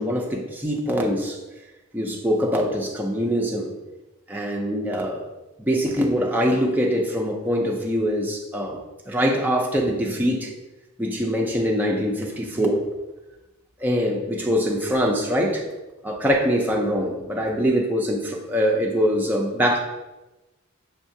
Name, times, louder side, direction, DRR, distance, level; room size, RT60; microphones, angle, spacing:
voice 1, 0.0-1.4 1.9-3.7 4.3-5.2 5.6-8.8 9.1-10.5 11.0-12.8 13.8-15.6 16.0-19.8, equal, 10° right, 0 dB, 0.4 m, -23 dB
6.4 x 2.4 x 2.7 m, 1.1 s
head